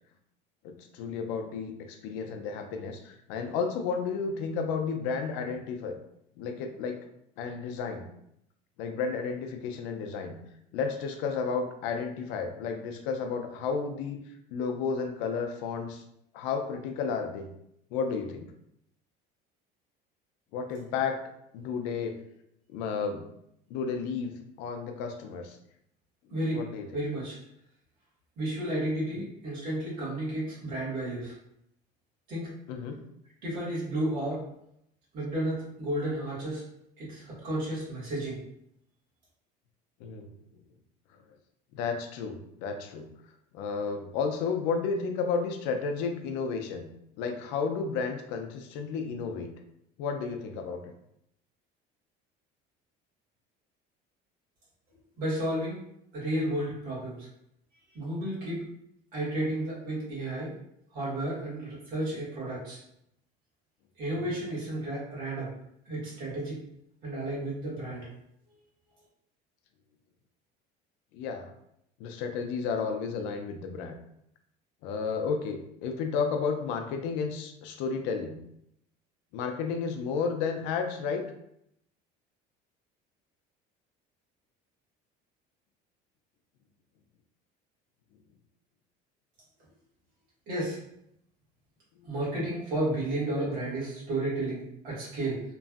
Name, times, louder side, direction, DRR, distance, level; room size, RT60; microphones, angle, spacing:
voice 1, 0.6-6.0 6.4-7.0 7.4-8.1 8.8-10.4 10.7-14.2 14.5-16.0 16.3-17.4 17.9-18.4 20.5-21.2 21.5-22.1 22.7-23.3 23.7-25.6 26.5-26.9 29.2-29.3 32.7-33.0 40.0-40.3 41.7-43.1 43.5-46.9 47.2-49.5 50.0-50.8 64.2-64.4 71.1-71.5 72.0-74.0 74.8-78.4 79.3-81.3, left 5 dB, 90° left, 5 dB, 0.5 m, -32 dB
voice 2, 26.3-26.6 26.9-27.4 28.4-31.3 32.3-32.5 33.4-34.4 35.1-36.6 37.0-38.4 55.2-55.8 56.1-57.3 57.9-58.6 59.1-60.5 60.9-62.8 64.0-65.5 65.9-66.6 67.0-68.1 90.5-90.8 92.0-95.4, right 1 dB, 50° right, -7 dB, 1.4 m, -32 dB
3.0 x 2.5 x 2.4 m, 0.76 s
cardioid pair, 180°, 18 cm